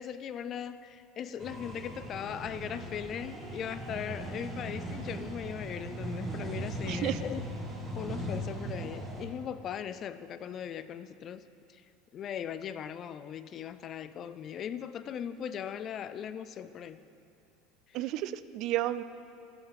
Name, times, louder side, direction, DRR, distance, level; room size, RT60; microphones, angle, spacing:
voice 1, 0.0-7.4 8.0-11.5 11.7-11.8 12.1-17.0, left 8 dB, 30° left, 13 dB, 0.4 m, -39 dB
sound 1, 1.4-9.3, right 1 dB, 15° right, 2.0 m, -38 dB
voice 2, 6.9-7.2 17.9-19.0, right 14 dB, 45° right, 15 dB, 0.3 m, -32 dB
14.5 x 7.0 x 5.9 m, 2.8 s
cardioid pair, 160°, 0 cm